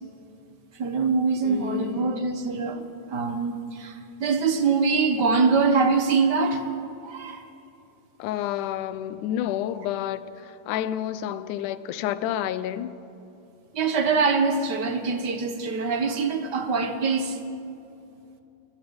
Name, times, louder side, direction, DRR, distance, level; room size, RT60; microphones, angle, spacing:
voice 1, 0.7-6.6 7.0-7.4 13.7-17.4, right 4 dB, 60° right, 1.1 m, -24 dB
voice 2, 1.4-2.3 8.2-12.9, left 11 dB, 75° left, 2.2 m, -30 dB
29.0 x 21.5 x 5.3 m
omnidirectional pair, 3.9 m